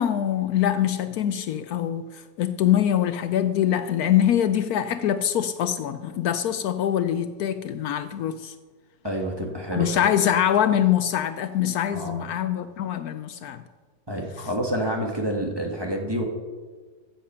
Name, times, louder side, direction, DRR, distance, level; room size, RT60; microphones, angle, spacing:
voice 1, 0.0-8.5 9.7-13.6, left 10 dB, 75° left, 1.0 m, -24 dB
voice 2, 9.0-10.0 11.9-12.2 14.1-16.2, right 1 dB, 15° right, 1.5 m, -28 dB
15.0 x 7.5 x 5.6 m
omnidirectional pair, 1.7 m